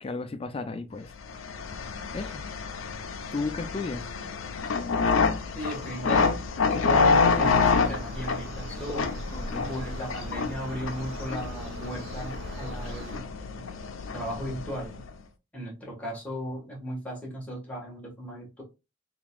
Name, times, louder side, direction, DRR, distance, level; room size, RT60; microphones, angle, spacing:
voice 1, 0.0-1.1 2.1-2.4 3.3-4.1 9.3-9.8, left 3 dB, 30° left, 0.4 m, -34 dB
sound 1, 1.2-15.1, left 4 dB, 75° left, 0.5 m, -28 dB
voice 2, 5.5-6.3 6.7-9.1 9.7-13.3 14.1-14.9 15.5-18.6, equal, 5° left, 1.4 m, -36 dB
sound 2, 7.3-13.2, right 1 dB, 70° right, 0.9 m, -40 dB
3.8 x 3.5 x 2.3 m
head